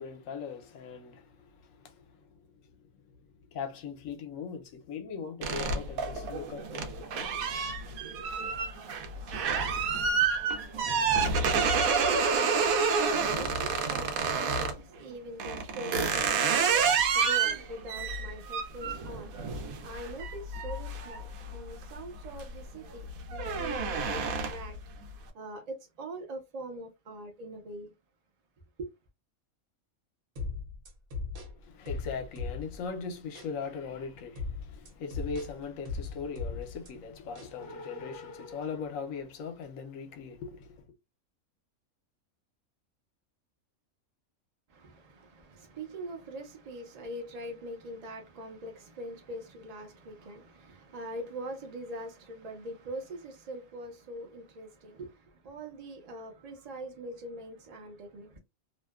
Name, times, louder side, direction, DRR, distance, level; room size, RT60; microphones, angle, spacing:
voice 1, 0.0-7.5 11.1-11.4 13.1-13.5 31.6-40.8, left 5 dB, 70° left, 1.0 m, -40 dB
sound 1, 5.4-14.8 15.4-21.8 22.2-22.6 22.9-24.8, right 5 dB, 80° right, 1.0 m, -29 dB
voice 2, 9.7-24.8 25.3-27.9 28.8-28.9 44.7-58.4, right 1 dB, 40° right, 0.6 m, -43 dB
sound 2, 30.4-32.9 33.4-33.5 34.4-36.9 37.4-37.6, left 4 dB, 60° right, 1.2 m, -38 dB
2.7 x 2.1 x 2.3 m
omnidirectional pair, 1.5 m